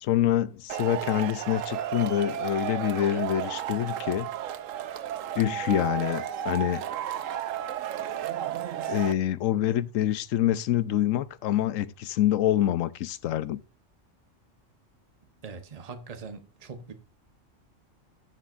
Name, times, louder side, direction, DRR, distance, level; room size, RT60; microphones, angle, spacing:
voice 1, 0.0-4.3 5.4-6.8 8.9-13.6, left 12 dB, 90° left, 1.0 m, -26 dB
Male speech man speaking / Shout / Clapping, 0.7-9.1, right 10 dB, 85° right, 1.0 m, -33 dB
voice 2, 15.4-16.9, right 5 dB, 30° right, 1.0 m, -42 dB
15.0 x 7.5 x 2.5 m
omnidirectional pair, 1.3 m